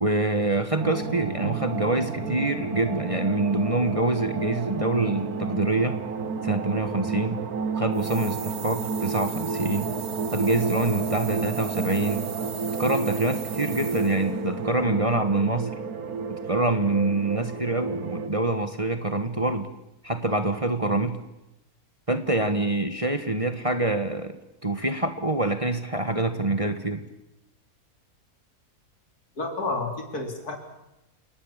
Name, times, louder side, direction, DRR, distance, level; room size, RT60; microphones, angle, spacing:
voice 1, 0.0-6.0 6.4-7.4 7.8-9.9 10.3-12.2 12.8-15.7 16.3-19.7 20.0-21.2 22.1-24.4 24.6-27.0, right 2 dB, 20° right, 7 dB, 1.4 m, -25 dB
sound 1, 0.8-18.3, right 5 dB, 70° right, 1.8 m, -31 dB
sound 2, 7.9-14.4, right 7 dB, 45° right, 1.1 m, -40 dB
voice 2, 29.4-30.6, left 3 dB, 75° left, 4 dB, 4.1 m, -30 dB
29.5 x 18.5 x 7.4 m, 0.93 s
omnidirectional pair, 1.7 m